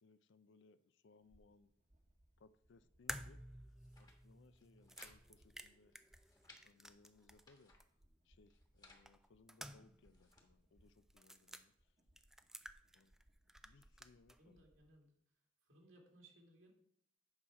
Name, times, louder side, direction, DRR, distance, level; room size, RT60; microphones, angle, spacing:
voice 1, 0.0-1.7 2.4-5.9 6.6-7.7 8.2-11.9 12.9-13.1 13.6-14.6, left 3 dB, 65° left, 14 dB, 0.5 m, -68 dB
sound 1, 1.2-14.9, right 1 dB, 40° right, 1.2 m, -73 dB
sound 2, 3.1-7.5 7.8-7.9 9.1-10.1 10.3-10.4 11.1-11.6 12.2-13.2 13.5-14.4, right 1 dB, ahead, 0.4 m, -52 dB
sound 3, 3.7-4.2 4.5-5.2 5.4-5.5 5.9-6.6 7.2-7.8 8.5-9.1 9.7-10.5, left 2 dB, 20° left, 1.3 m, -65 dB
voice 2, 14.4-15.1 15.6-16.7, right 1 dB, 75° right, 0 dB, 2.2 m, -64 dB
8.7 x 5.7 x 4.7 m, 0.71 s
head